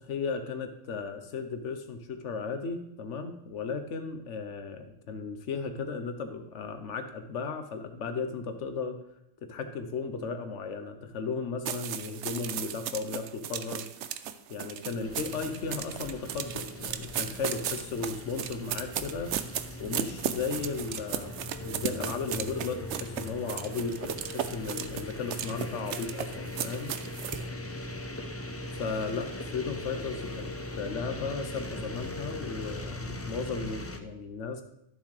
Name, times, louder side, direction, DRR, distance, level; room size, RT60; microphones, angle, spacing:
voice 1, 0.1-9.0 9.4-13.9 14.5-19.3 19.8-26.9 28.7-34.6, left 5 dB, 85° left, 7 dB, 1.1 m, -35 dB
sound 1, 11.6-27.4, right 9 dB, 75° right, 0.9 m, -36 dB
sound 2, 15.0-34.0, left 1 dB, 20° left, 0.4 m, -40 dB
12.0 x 7.1 x 3.2 m, 0.80 s
omnidirectional pair, 1.2 m